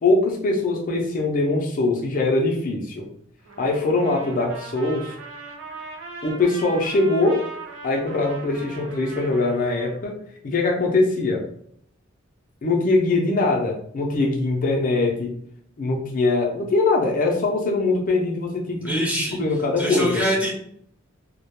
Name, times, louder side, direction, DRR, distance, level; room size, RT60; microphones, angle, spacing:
voice 1, 0.0-3.1 3.6-5.1 6.2-7.4 7.8-10.2 10.4-11.4 12.6-15.3 15.8-19.0 19.4-20.2, left 2 dB, 45° left, 1 dB, 0.4 m, -22 dB
Trumpet, 3.5-10.0, right 3 dB, 75° right, 0.5 m, -40 dB
voice 2, 18.8-19.4 19.8-20.5, equal, 5° right, -2 dB, 0.6 m, -24 dB
2.1 x 2.1 x 2.9 m, 0.65 s
head